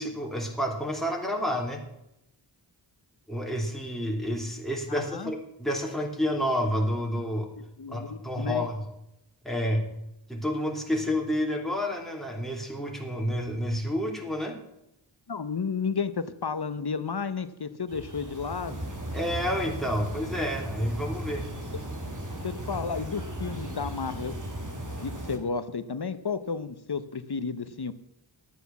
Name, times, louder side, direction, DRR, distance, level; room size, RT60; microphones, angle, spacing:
voice 1, 0.0-1.8 3.3-7.5 7.9-8.8 9.4-9.9 10.3-14.6 19.1-21.4, equal, ahead, 0 dB, 3.2 m, -29 dB
voice 2, 4.9-5.3 7.8-8.7 15.3-18.8 22.4-24.4 25.0-27.9, left 5 dB, 55° left, 13 dB, 1.0 m, -32 dB
sound 1, 17.9-25.4, right 1 dB, 40° right, 2.7 m, -36 dB
12.0 x 9.2 x 7.0 m, 0.84 s
wide cardioid pair, 40°, 46 cm